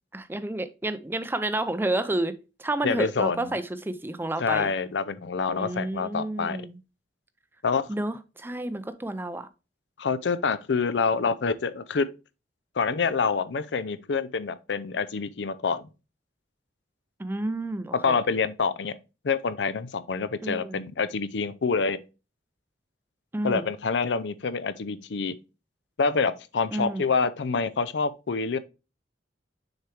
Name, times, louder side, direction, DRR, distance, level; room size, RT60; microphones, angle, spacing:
voice 1, 0.1-2.3 2.6-4.7 5.6-6.8 7.9-9.5 17.2-18.2 20.4-20.8 23.3-23.7 26.7-27.1, right 1 dB, 10° right, 0.4 m, -30 dB
voice 2, 2.8-3.5 4.4-6.6 7.6-7.8 10.0-12.1 12.8-15.8 18.0-19.0 19.2-22.0 23.4-25.3 26.0-28.6, left 5 dB, 75° left, 0.5 m, -27 dB
6.5 x 4.5 x 3.3 m
head